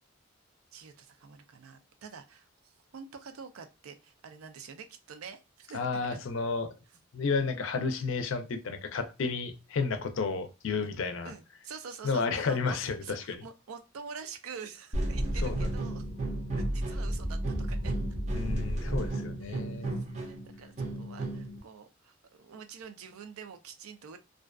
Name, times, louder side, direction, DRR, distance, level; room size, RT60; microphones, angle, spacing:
voice 1, 0.7-6.2 11.2-16.0 16.5-17.9 19.4-24.2, right 6 dB, 90° right, 0.4 m, -47 dB
voice 2, 5.7-6.7 7.1-11.3 12.0-13.4 15.4-15.7 18.3-20.0, left 4 dB, 70° left, 0.4 m, -32 dB
sound 1, 14.9-21.6, right 1 dB, 35° right, 0.5 m, -32 dB
2.4 x 2.2 x 2.3 m
head